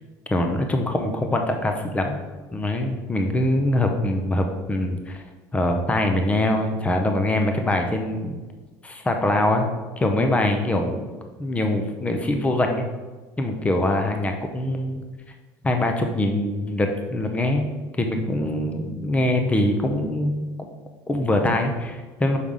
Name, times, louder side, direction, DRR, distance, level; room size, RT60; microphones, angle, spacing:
voice 1, 0.3-2.2 2.5-5.2 5.5-8.4 8.8-9.7 10.0-11.1 11.4-12.8 13.4-15.0 15.6-17.7 18.0-20.4 21.1-22.4, left 1 dB, 15° left, 4 dB, 0.8 m, -23 dB
6.3 x 3.6 x 5.5 m, 1.3 s
supercardioid pair, 100°, 9 cm